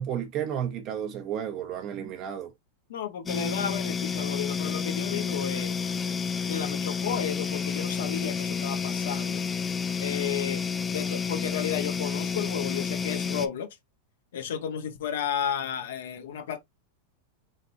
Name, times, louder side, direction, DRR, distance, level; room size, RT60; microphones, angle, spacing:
voice 1, 0.0-2.5, right 9 dB, 40° right, 0.8 m, -32 dB
voice 2, 2.9-5.8 6.5-9.4 10.0-10.6 10.9-13.8 14.3-16.6, left 8 dB, 80° left, 1.2 m, -33 dB
sound 1, 3.3-13.5, left 6 dB, 15° left, 0.4 m, -30 dB
4.1 x 3.8 x 2.7 m
supercardioid pair, 150°, 0 cm